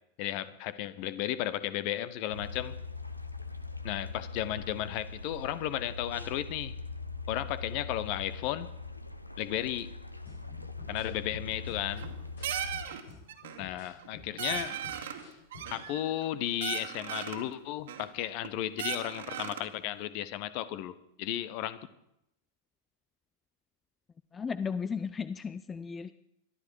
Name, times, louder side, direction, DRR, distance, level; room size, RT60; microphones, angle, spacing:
voice 1, 0.2-2.7 3.8-6.7 7.3-8.7 9.4-9.9 10.9-12.1 13.6-14.8 15.7-21.8, left 13 dB, 45° left, 15 dB, 1.1 m, -34 dB
sound 1, 2.3-12.9, left 4 dB, 85° left, 1.0 m, -41 dB
sound 2, 10.2-15.9, left 4 dB, 70° left, 6.4 m, -52 dB
sound 3, 11.7-12.2 12.4-13.0 13.3-13.7 14.0-14.1 14.4-15.2 15.5-16.3 16.6-17.4 17.9-18.5 18.8-19.7, right 9 dB, 60° right, 2.0 m, -37 dB
voice 2, 24.3-26.1, left 6 dB, 20° left, 14 dB, 0.5 m, -35 dB
22.5 x 13.0 x 4.8 m, 0.80 s
figure-of-eight pair, 90°, 0 cm